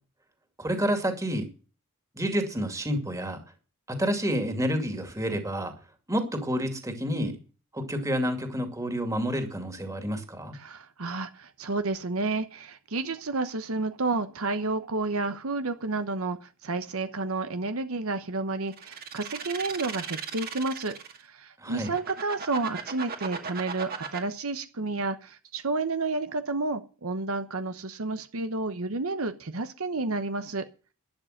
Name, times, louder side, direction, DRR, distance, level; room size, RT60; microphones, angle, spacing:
voice 1, 0.6-1.5 2.1-3.4 3.9-5.7 6.1-7.4 7.7-10.5 21.6-21.9, equal, 15° right, 6 dB, 2.4 m, -29 dB
voice 2, 10.5-21.0 21.2-30.6, right 3 dB, 75° right, 9 dB, 1.0 m, -31 dB
sound 1, 18.7-21.2 21.7-24.2, right 6 dB, 45° right, 2.1 m, -36 dB
12.0 x 10.5 x 6.6 m, 0.35 s
head